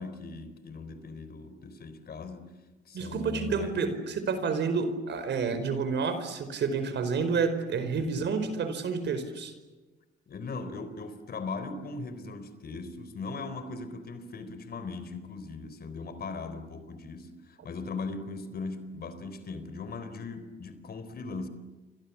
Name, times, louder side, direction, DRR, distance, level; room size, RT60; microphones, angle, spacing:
voice 1, 0.0-2.5 2.9-4.0 7.9-8.2 10.3-21.5, left 3 dB, 50° left, 4.1 m, -39 dB
voice 2, 2.9-9.5, right 5 dB, 65° right, 4.7 m, -29 dB
29.5 x 25.0 x 7.3 m
cardioid pair, 90°, 20 cm